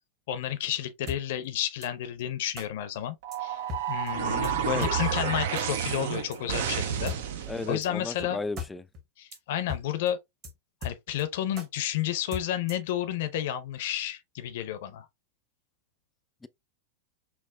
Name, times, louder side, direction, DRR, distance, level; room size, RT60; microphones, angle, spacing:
voice 1, 0.3-3.2 3.4-3.6 3.9-7.1 7.7-8.4 9.2-10.2 10.8-15.1, left 11 dB, 55° left, 0.6 m, -31 dB
sound 1, 1.1-1.2 1.8-1.9 2.6-2.7 3.3-3.4 3.7-3.8 4.1-4.2 4.4-4.5 4.8-4.9 5.6-5.7 6.3-6.4 7.1-7.2 7.8-7.9 8.2-8.3 8.6-8.7 8.9-9.0 9.3-9.4 9.7-9.8 10.1-10.2 10.4-10.5 10.8-11.2 11.6-11.7 12.3-12.9, left 5 dB, 35° right, 1.3 m, -37 dB
sound 2, 3.2-7.8, right 8 dB, 55° right, 0.6 m, -30 dB
voice 2, 7.5-8.9 16.4-16.5, left 3 dB, 10° left, 0.3 m, -34 dB
5.8 x 2.3 x 2.3 m
figure-of-eight pair, 90°, 0 cm